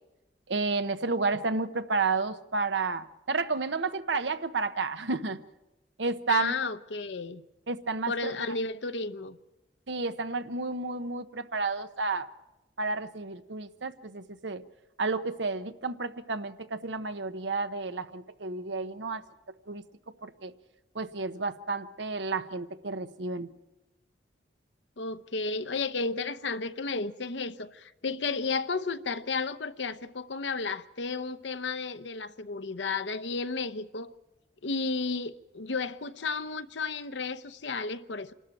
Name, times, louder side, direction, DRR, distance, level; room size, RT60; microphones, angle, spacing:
voice 1, 0.5-5.4 6.0-6.5 7.7-8.3 9.9-12.3 12.8-14.6 15.0-19.2 19.7-19.8 20.2-20.5 20.9-23.5, right 3 dB, 80° right, 1.0 m, -31 dB
voice 2, 6.3-7.4 8.1-9.4 25.0-34.1 34.6-38.3, left 4 dB, 80° left, 0.9 m, -33 dB
27.0 x 13.0 x 9.1 m
head